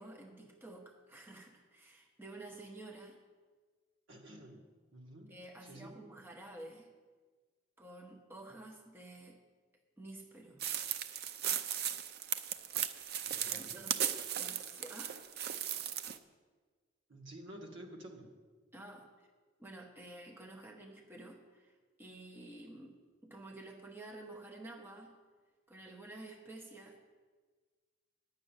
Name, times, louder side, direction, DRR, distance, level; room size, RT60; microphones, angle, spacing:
voice 1, 0.0-3.2 5.3-6.9 7.8-9.4 10.0-10.6 13.5-15.2 18.7-19.3 19.6-23.0 23.2-25.2 25.7-27.1, right 2 dB, 10° right, 1 dB, 0.9 m, -51 dB
voice 2, 4.1-6.0 13.3-13.9 17.1-18.4, right 1 dB, 70° right, 1 dB, 1.7 m, -51 dB
sound 1, 10.6-16.2, right 9 dB, 55° right, 0.5 m, -37 dB
10.0 x 6.4 x 8.8 m, 1.5 s
head